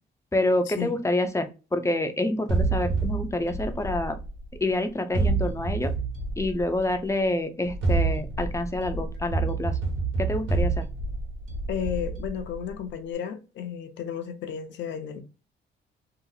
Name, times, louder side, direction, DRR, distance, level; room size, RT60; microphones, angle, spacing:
voice 1, 0.3-4.2 4.6-5.9 6.4-9.8 10.2-10.9, left 1 dB, 15° left, 0.5 m, -27 dB
sound 1, 2.5-4.6 5.1-7.0 7.6-12.7, right 3 dB, 75° right, 1.2 m, -28 dB
voice 2, 11.7-15.2, left 8 dB, 65° left, 0.6 m, -33 dB
2.8 x 2.0 x 3.8 m
cardioid pair, 90°, 20 cm